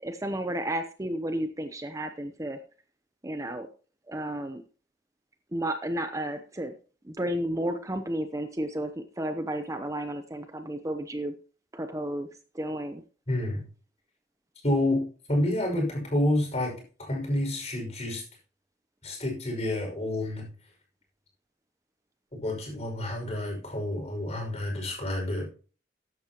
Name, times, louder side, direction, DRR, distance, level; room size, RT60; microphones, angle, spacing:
voice 1, 0.0-2.6 3.2-3.7 4.1-4.6 5.5-6.7 7.0-11.3 11.7-12.3 12.5-13.0, right 1 dB, 20° right, 8 dB, 0.8 m, -32 dB
voice 2, 13.3-13.7 14.6-18.2 19.0-20.5 22.3-25.5, left 1 dB, 40° left, 1 dB, 5.8 m, -29 dB
14.5 x 11.0 x 3.0 m, 0.38 s
head